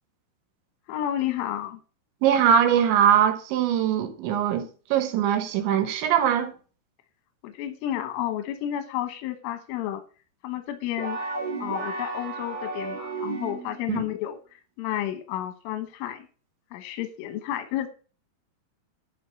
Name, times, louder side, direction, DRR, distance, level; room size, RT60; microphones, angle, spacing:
voice 1, 0.9-1.8 7.4-10.0 10.4-11.2 11.6-16.3 16.7-17.9, left 12 dB, 85° left, 3.6 m, -31 dB
voice 2, 2.2-6.5 13.9-14.0, right 9 dB, 75° right, 3.2 m, -22 dB
sound 1, 11.0-13.9, right 3 dB, 35° right, 1.4 m, -33 dB
11.5 x 5.1 x 6.7 m
omnidirectional pair, 5.6 m